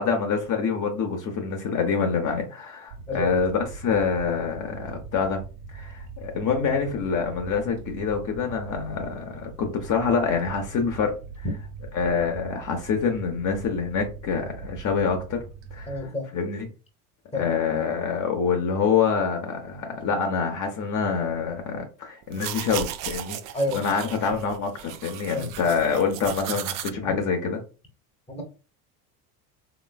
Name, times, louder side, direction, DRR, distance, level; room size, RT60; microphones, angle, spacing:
voice 1, 0.0-5.4 5.7-11.1 11.9-15.4 15.7-16.7 17.3-23.4 23.7-27.6, left 5 dB, 40° left, 0.8 m, -26 dB
sound 1, 2.9-16.0, right 4 dB, 65° right, 1.1 m, -41 dB
voice 2, 15.9-16.2 17.3-17.4 23.5-23.8 25.3-25.5 27.1-27.2 28.3-28.4, left 2 dB, 15° left, 0.9 m, -28 dB
sound 2, 22.2-26.9, right 11 dB, 45° right, 0.5 m, -35 dB
3.1 x 3.1 x 2.2 m
supercardioid pair, 95°, 47 cm